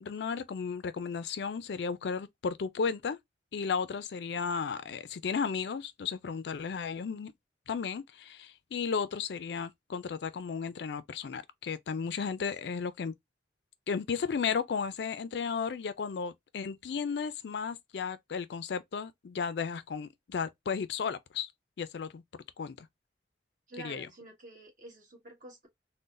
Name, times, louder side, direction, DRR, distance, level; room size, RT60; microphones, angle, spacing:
voice 1, 0.0-3.2 3.5-7.3 7.7-13.1 13.9-21.5 21.8-22.2 22.6-22.9 23.8-24.1, left 6 dB, 65° left, 0.4 m, -34 dB
voice 2, 12.4-12.7 23.7-25.7, right 1 dB, 45° right, 1.6 m, -49 dB
3.8 x 2.1 x 2.4 m
head